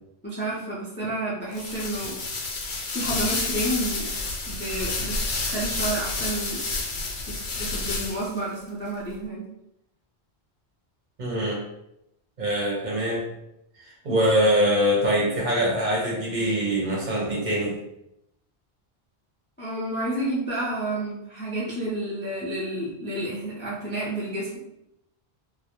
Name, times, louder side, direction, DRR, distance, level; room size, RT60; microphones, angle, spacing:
voice 1, 0.2-2.2 2.9-4.1 4.5-5.2 5.4-6.6 7.3-9.4 14.1-14.2 19.6-24.6, right 1 dB, 20° left, -7 dB, 0.3 m, -30 dB
sound 1, 1.5-8.4, left 3 dB, 80° left, 0.8 m, -30 dB
voice 2, 11.2-11.6 12.4-13.3 14.0-17.8, equal, 50° right, -3 dB, 0.7 m, -23 dB
2.2 x 2.1 x 2.8 m, 0.83 s
omnidirectional pair, 1.1 m